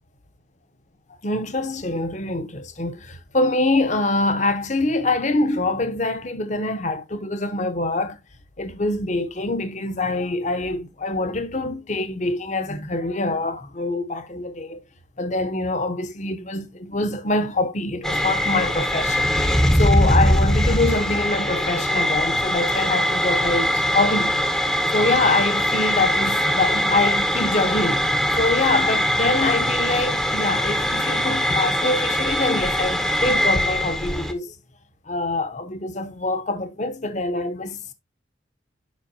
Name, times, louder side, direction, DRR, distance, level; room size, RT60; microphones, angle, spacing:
voice 1, 1.2-8.2 8.6-14.8 15.2-19.3 19.7-24.5 24.9-28.1 28.4-34.5 35.1-37.9, left 2 dB, 40° left, 0.9 m, -24 dB
sound 1, 18.0-34.3, equal, ahead, 0.8 m, -21 dB
7.4 x 5.8 x 2.7 m
head